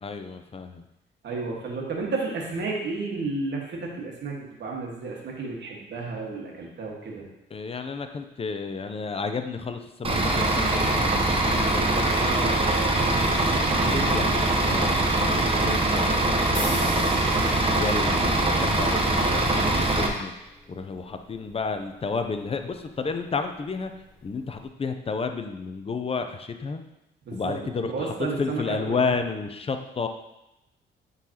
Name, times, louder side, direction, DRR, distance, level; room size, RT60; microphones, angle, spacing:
voice 1, 0.0-0.8 7.5-12.0 13.8-17.1 17.5-20.3 20.7-23.9 24.2-26.8 27.3-30.1, left 4 dB, 30° left, 7 dB, 0.6 m, -32 dB
voice 2, 1.2-7.2 12.0-14.2 19.2-19.5 27.2-27.5 27.8-29.1, right 3 dB, 60° right, -1 dB, 1.6 m, -32 dB
Bus / Idling, 10.0-20.1, right 2 dB, 30° right, 0.9 m, -23 dB
sound 1, 16.5-24.7, left 1 dB, 10° left, 2.1 m, -43 dB
8.9 x 3.9 x 2.9 m, 0.92 s
cardioid pair, 90°, 20 cm